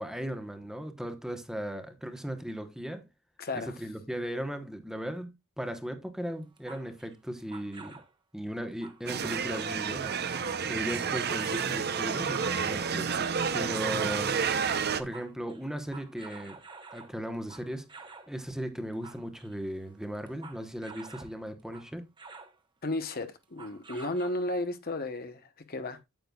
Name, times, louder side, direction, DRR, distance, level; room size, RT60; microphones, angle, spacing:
voice 1, 0.0-3.1 3.5-8.0 8.3-13.1 13.5-14.4 15.0-16.6 16.9-22.1, equal, ahead, 1.1 m, -37 dB
voice 2, 3.4-3.7 22.8-25.4 25.7-26.0, left 2 dB, 45° left, 1.0 m, -33 dB
sound 1, 6.4-8.1 8.8-9.7 10.1-13.1 14.2-14.4 14.7-18.3 18.8-21.3 21.7-22.6 23.4-24.7, right 4 dB, 20° right, 1.2 m, -49 dB
sound 2, 9.1-15.0, right 6 dB, 50° right, 0.8 m, -30 dB
9.2 x 8.7 x 2.4 m
head